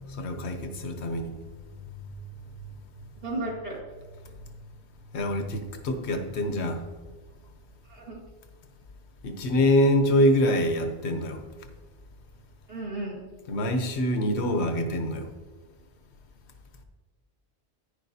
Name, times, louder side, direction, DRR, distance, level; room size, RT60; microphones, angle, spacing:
voice 1, 0.1-1.3 5.1-6.8 9.2-11.4 13.5-15.3, left 1 dB, 80° left, 6 dB, 1.1 m, -25 dB
voice 2, 3.2-3.8 7.9-8.2 12.7-13.2, right 2 dB, 60° right, -6 dB, 1.8 m, -34 dB
9.9 x 9.7 x 2.7 m, 1.4 s
omnidirectional pair, 1.1 m